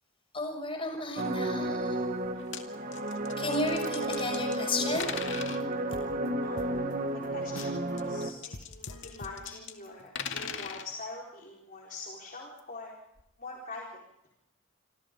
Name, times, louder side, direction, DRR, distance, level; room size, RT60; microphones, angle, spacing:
voice 1, 0.3-2.2 3.4-5.5, left 2 dB, 25° left, 4 dB, 6.5 m, -33 dB
sound 1, 1.2-8.3, right 1 dB, 40° right, 1.8 m, -32 dB
sound 2, 2.2-2.6 2.9-4.7 5.0-5.6 7.5-9.7 10.0-10.9 12.6-12.7 13.2-13.3, left 7 dB, 60° left, 2.2 m, -40 dB
sound 3, 4.9-5.3 5.6-5.7 5.9-7.9 8.2-8.3 8.5-10.0, left 2 dB, 80° left, 1.6 m, -46 dB
voice 2, 7.3-13.0 13.4-14.0, left 3 dB, 40° left, -2 dB, 4.3 m, -44 dB
27.0 x 27.0 x 3.8 m, 0.84 s
head